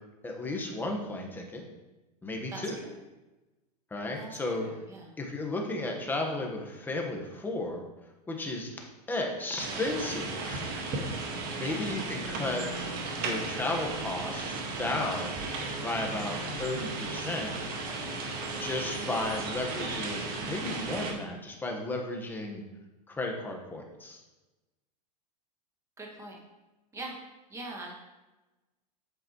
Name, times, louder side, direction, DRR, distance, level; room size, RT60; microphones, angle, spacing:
voice 1, 0.2-1.7 2.2-2.8 3.9-4.7 5.2-7.8 8.3-8.7 9.1-10.9 11.1-12.7 13.2-15.4 15.8-17.7 18.6-22.6 23.1-24.2, left 2 dB, 10° left, 1 dB, 1.2 m, -34 dB
voice 2, 2.5-2.9 4.1-5.1 11.3-11.8 16.1-16.4 26.0-26.4 26.9-27.2 27.5-28.0, right 2 dB, 15° right, -1 dB, 1.8 m, -43 dB
sound 1, 9.6-21.1, right 3 dB, 45° right, 1.7 m, -35 dB
8.0 x 7.5 x 3.0 m, 1.1 s
supercardioid pair, 130°, 21 cm